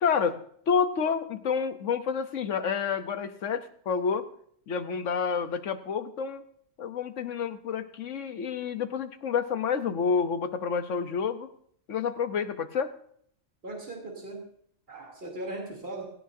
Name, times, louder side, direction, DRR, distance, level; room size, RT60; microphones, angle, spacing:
voice 1, 0.0-4.3 4.7-6.4 6.8-11.5 11.9-12.9, left 6 dB, 75° left, 10 dB, 1.3 m, -29 dB
voice 2, 13.6-14.5 14.9-16.1, right 2 dB, 50° right, -2 dB, 3.5 m, -38 dB
18.0 x 17.0 x 2.8 m, 0.63 s
omnidirectional pair, 1.3 m